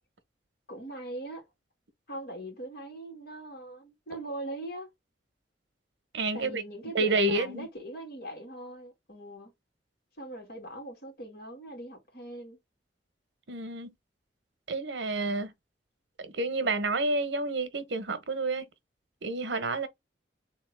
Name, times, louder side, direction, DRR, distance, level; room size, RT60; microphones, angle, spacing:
voice 1, 0.7-1.4 2.1-4.9 6.3-9.5 10.2-12.6, right 1 dB, 60° left, 2.5 m, -41 dB
voice 2, 6.1-6.6 6.9-7.7 13.5-13.9 14.7-15.5 16.2-18.6 19.2-19.9, right 2 dB, 85° right, 0.9 m, -29 dB
3.6 x 3.0 x 3.2 m
head